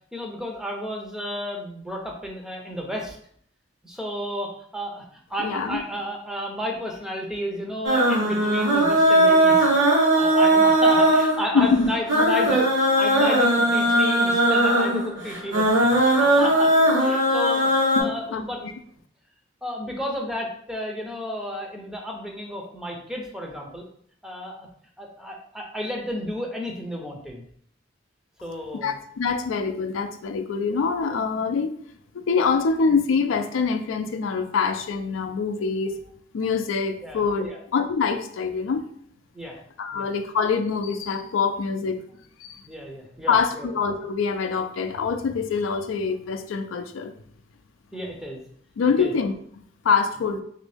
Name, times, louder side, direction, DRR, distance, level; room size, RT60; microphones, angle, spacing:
voice 1, 0.1-3.2 3.8-9.7 10.2-16.0 16.4-16.7 17.0-17.7 18.0-18.6 19.6-23.8 24.2-24.7 25.0-27.5 28.4-29.0 37.0-37.6 39.3-39.6 39.9-40.1 42.7-43.7 47.9-48.4 49.0-49.1, equal, 5° right, 0 dB, 0.5 m, -32 dB
voice 2, 5.4-5.8 11.5-11.9 12.5-12.6 18.0-18.7 28.8-31.7 32.1-35.9 36.3-38.8 39.8-42.0 42.4-42.6 43.3-47.1 48.8-49.3 49.8-50.4, left 5 dB, 90° left, 8 dB, 0.4 m, -24 dB
sound 1, 7.8-18.0, right 1 dB, 70° right, 1.2 m, -19 dB
3.0 x 2.6 x 3.3 m, 0.63 s
head